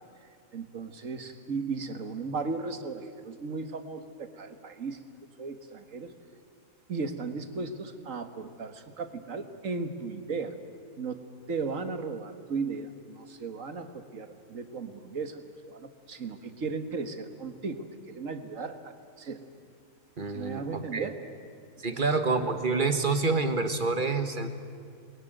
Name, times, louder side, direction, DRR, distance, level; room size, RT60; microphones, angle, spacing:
voice 1, 0.5-5.0 5.4-6.1 6.9-10.6 11.0-11.2 11.5-19.5 20.3-21.2 21.9-22.2, right 4 dB, 60° right, 8 dB, 2.0 m, -36 dB
voice 2, 20.2-21.1 21.8-24.5, right 3 dB, 35° right, 8 dB, 1.7 m, -27 dB
28.5 x 22.0 x 9.2 m, 2.2 s
omnidirectional pair, 1.5 m